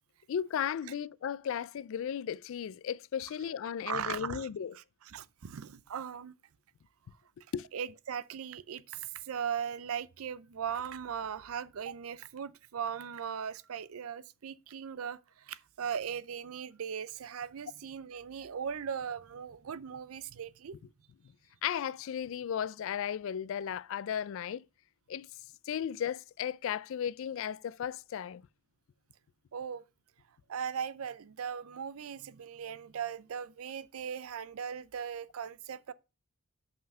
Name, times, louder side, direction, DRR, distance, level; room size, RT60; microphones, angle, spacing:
voice 1, 0.3-4.7 7.5-7.7 21.6-24.6 25.1-25.3 25.7-28.4, left 8 dB, 65° left, 0.3 m, -35 dB
voice 2, 3.9-4.5 4.7-6.4 7.7-20.8 29.5-29.8 30.5-35.9, right 7 dB, 80° right, 0.5 m, -39 dB
5.6 x 5.5 x 5.4 m
head